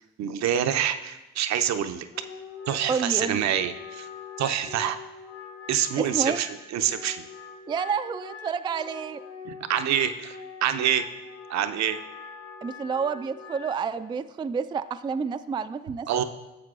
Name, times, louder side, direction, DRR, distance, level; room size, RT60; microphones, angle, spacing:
voice 1, 0.2-2.1 2.7-4.1 4.4-5.0 5.7-7.2 9.5-11.1 11.5-12.0 16.1-16.2, right 9 dB, 60° right, 9 dB, 0.6 m, -26 dB
Wind instrument woodwind instrument, 2.1-13.8, left 5 dB, 50° left, 1.3 m, -43 dB
voice 2, 2.9-3.4 6.0-6.4 7.7-9.2 12.6-16.2, right 6 dB, 15° right, 11 dB, 0.3 m, -29 dB
11.0 x 7.2 x 2.4 m, 1.1 s
hypercardioid pair, 45°, 31 cm